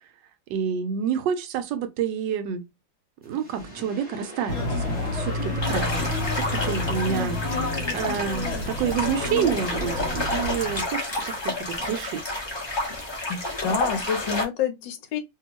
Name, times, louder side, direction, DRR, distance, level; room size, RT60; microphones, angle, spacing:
voice 1, 0.5-2.6 3.2-6.1 6.4-12.2, right 8 dB, 75° right, 1.2 m, -29 dB
sound 1, 3.2-10.1, right 1 dB, 5° right, 0.9 m, -43 dB
sound 2, 4.5-10.8, left 2 dB, 45° left, 1.0 m, -29 dB
sound 3, 5.6-14.4, left 1 dB, 20° left, 0.7 m, -30 dB
voice 2, 13.3-15.2, left 7 dB, 75° left, 1.4 m, -28 dB
3.0 x 2.7 x 2.8 m
omnidirectional pair, 2.0 m